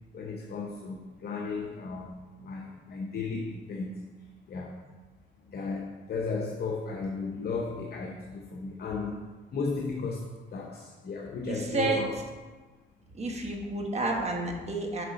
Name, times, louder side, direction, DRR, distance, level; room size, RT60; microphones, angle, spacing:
voice 1, 0.1-4.0 4.5-4.8 5.5-9.2 9.5-12.1, left 4 dB, 55° left, 1 dB, 0.8 m, -35 dB
voice 2, 11.5-12.0 13.1-15.0, right 3 dB, 35° right, 2 dB, 1.3 m, -30 dB
6.5 x 4.9 x 4.1 m, 1.3 s
cardioid pair, 90°, 20 cm